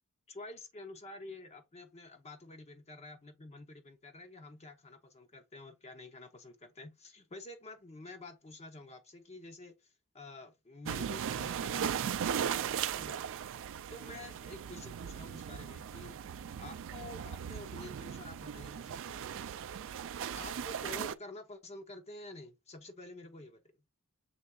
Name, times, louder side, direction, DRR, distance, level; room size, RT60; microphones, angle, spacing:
voice 1, 0.3-12.1 12.9-13.2 13.9-16.2 16.6-19.2 20.3-23.6, left 2 dB, 30° left, 0.6 m, -49 dB
sound 1, 10.9-21.1, right 8 dB, 60° right, 0.4 m, -38 dB
6.6 x 3.4 x 2.2 m
head